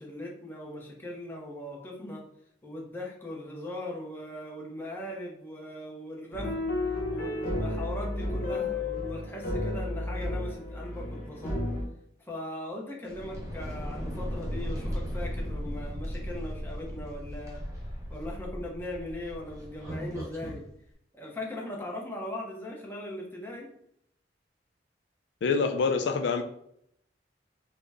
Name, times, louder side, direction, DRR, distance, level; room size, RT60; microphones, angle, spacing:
voice 1, 0.0-2.2 2.6-6.6 7.1-11.5 12.2-17.6 18.1-20.6 21.1-23.7, left 1 dB, 10° left, -2 dB, 0.7 m, -39 dB
sound 1, 6.3-11.8, left 2 dB, 55° left, 0.8 m, -32 dB
sound 2, 13.0-20.6, equal, 15° right, 0.9 m, -36 dB
voice 2, 25.4-26.4, left 4 dB, 80° left, 6 dB, 0.4 m, -26 dB
3.8 x 2.1 x 3.4 m, 0.71 s
head